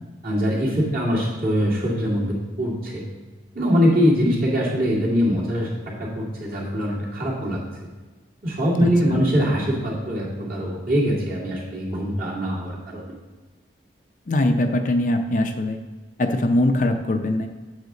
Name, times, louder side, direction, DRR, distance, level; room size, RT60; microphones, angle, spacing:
voice 1, 0.2-3.0 3.5-5.7 6.0-7.6 8.4-13.0, equal, 50° right, -5 dB, 2.4 m, -22 dB
voice 2, 14.3-15.8 16.2-17.5, left 1 dB, 45° left, 6 dB, 0.5 m, -21 dB
8.1 x 7.2 x 3.9 m, 1.3 s
head